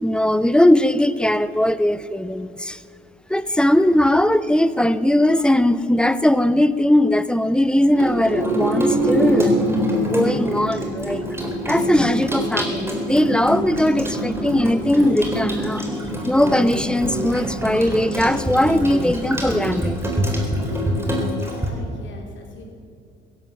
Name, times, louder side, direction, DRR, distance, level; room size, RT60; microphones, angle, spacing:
voice 1, 0.0-2.8 3.3-9.5 10.0-11.2 11.6-15.9 16.2-20.0, left 1 dB, 5° left, 14 dB, 0.7 m, -19 dB
Water tap faucet / Sink (filling or washing), 7.9-21.7, equal, 10° right, 3.9 m, -24 dB
voice 2, 21.4-22.7, left 2 dB, 65° left, 1 dB, 3.9 m, -40 dB
15.5 x 11.5 x 7.5 m, 2.5 s
supercardioid pair, 80°, 21 cm